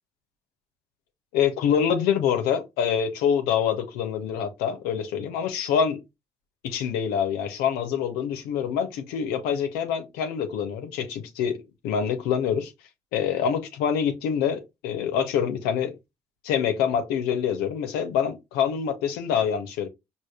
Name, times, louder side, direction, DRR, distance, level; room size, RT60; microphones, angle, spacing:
voice 1, 1.3-6.0 6.6-12.7 13.1-15.9 16.4-19.9, left 8 dB, 80° left, 0.6 m, -26 dB
4.8 x 2.5 x 2.3 m
hypercardioid pair, 40°, 16 cm